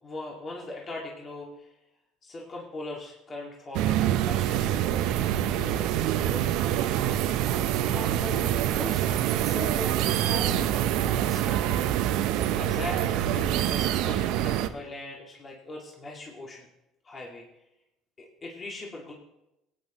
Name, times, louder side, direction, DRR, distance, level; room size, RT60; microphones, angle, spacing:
voice 1, 0.0-1.7 2.2-6.6 12.5-16.7 17.0-17.5 18.2-19.1, left 2 dB, 35° left, -2 dB, 2.1 m, -40 dB
sound 1, 3.7-14.7, right 11 dB, 75° right, 0.6 m, -26 dB
voice 2, 7.9-11.9, equal, 10° left, -2 dB, 2.5 m, -39 dB
17.0 x 9.1 x 3.0 m, 0.89 s
supercardioid pair, 90°, 0 cm